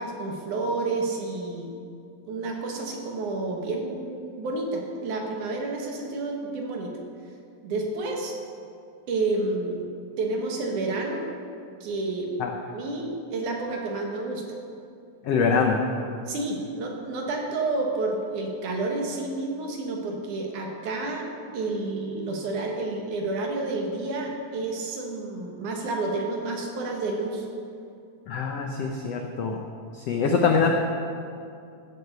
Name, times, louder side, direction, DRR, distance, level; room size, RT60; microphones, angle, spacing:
voice 1, 0.0-1.7 2.3-6.9 7.6-8.4 9.1-9.9 10.2-11.3 11.8-12.3 12.7-14.4 16.3-21.3 21.5-27.5, right 3 dB, 65° right, 1 dB, 2.9 m, -30 dB
voice 2, 15.3-15.9 28.3-29.6 30.1-30.7, left 5 dB, 80° left, 3 dB, 1.4 m, -23 dB
16.5 x 8.1 x 6.8 m, 2.5 s
omnidirectional pair, 4.1 m